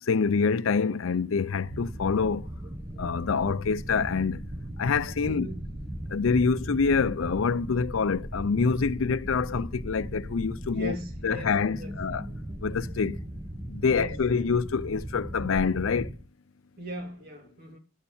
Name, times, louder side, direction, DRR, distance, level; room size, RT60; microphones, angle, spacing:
voice 1, 0.0-2.5 3.0-4.5 4.8-5.5 6.1-11.0 11.2-12.3 12.6-13.2 13.7-16.2, left 5 dB, 85° left, 0.5 m, -26 dB
sound 1, 1.6-16.2, right 1 dB, 20° right, 1.2 m, -38 dB
voice 2, 5.2-5.6 10.7-11.5 11.8-11.9 13.9-14.5 16.8-17.8, right 1 dB, 50° right, 3.4 m, -39 dB
12.5 x 7.0 x 7.1 m
head